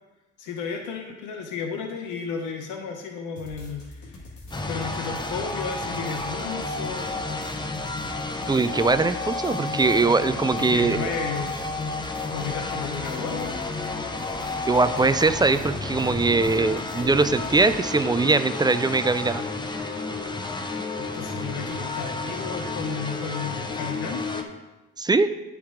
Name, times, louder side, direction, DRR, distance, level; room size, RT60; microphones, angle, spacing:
voice 1, 0.4-4.3 4.6-7.1 10.6-11.5 12.3-13.6 21.0-24.4, left 5 dB, 90° left, 4 dB, 0.8 m, -33 dB
sound 1, 3.3-17.8, left 1 dB, 70° left, 1.8 m, -44 dB
sound 2, 4.5-24.4, left 3 dB, 15° left, 0.7 m, -31 dB
voice 2, 8.5-11.1 14.6-19.4 25.0-25.3, right 3 dB, 15° right, 12 dB, 0.3 m, -21 dB
10.0 x 4.7 x 3.7 m, 1.1 s
cardioid pair, 90°, 30 cm